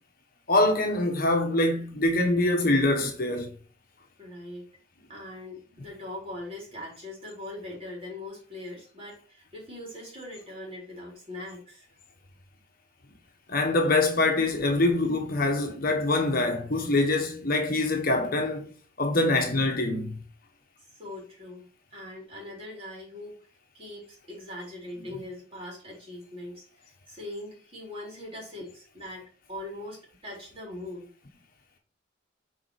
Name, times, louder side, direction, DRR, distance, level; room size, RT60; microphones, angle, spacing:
voice 1, 0.5-3.5 13.5-18.7 19.0-20.2, left 2 dB, 45° left, 1.1 m, -24 dB
voice 2, 4.2-4.7 5.1-11.9 20.8-21.6 21.9-23.4 23.7-31.1, left 1 dB, 30° right, 3.8 m, -41 dB
6.7 x 4.4 x 4.8 m
head